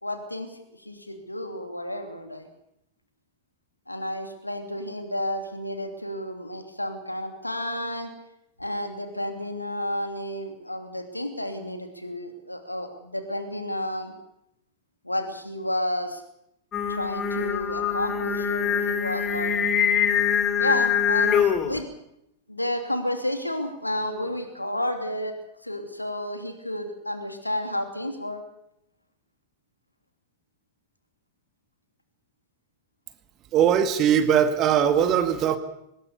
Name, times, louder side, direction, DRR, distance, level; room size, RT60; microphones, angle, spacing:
voice 1, 0.0-2.5 3.9-8.1 8.6-14.1 15.0-16.2 16.9-19.5 20.6-21.9 22.5-25.3 25.6-28.4, left 1 dB, 85° left, 6 dB, 2.9 m, -31 dB
Singing, 16.7-21.8, left 7 dB, 30° left, 3.2 m, -24 dB
voice 2, 33.5-35.6, right 9 dB, 35° right, 9 dB, 2.1 m, -20 dB
24.5 x 20.0 x 7.1 m, 0.78 s
figure-of-eight pair, 90°, 0 cm